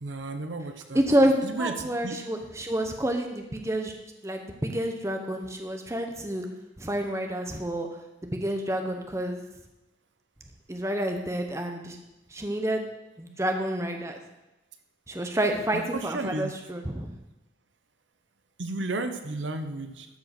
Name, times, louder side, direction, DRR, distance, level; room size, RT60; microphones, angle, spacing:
voice 1, 0.0-1.0 1.4-2.2 15.7-16.5 18.6-20.1, right 2 dB, 80° right, 7 dB, 0.9 m, -33 dB
voice 2, 0.9-3.9 4.2-6.4 6.8-7.9 8.2-9.4 10.7-12.0 12.3-12.8 13.2-14.2 15.1-17.1, right 1 dB, 15° right, 4 dB, 0.9 m, -28 dB
13.0 x 4.9 x 6.0 m, 0.99 s
head